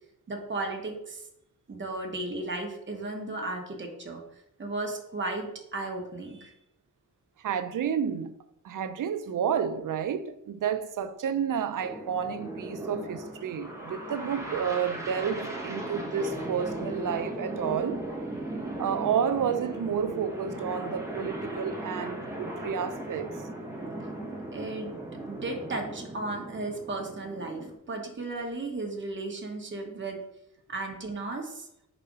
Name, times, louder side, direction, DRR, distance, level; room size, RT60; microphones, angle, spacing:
voice 1, 0.3-1.3 1.7-4.2 4.6-6.5 24.5-24.9 25.3-30.2 30.7-31.7, right 2 dB, 35° right, 1.2 m, -35 dB
voice 2, 7.4-8.3 8.6-18.0 18.8-23.3, right 7 dB, 80° right, 0.6 m, -30 dB
sound 1, 11.8-27.7, right 1 dB, 10° right, 1.2 m, -37 dB
5.1 x 4.1 x 5.3 m
wide cardioid pair, 150°, 31 cm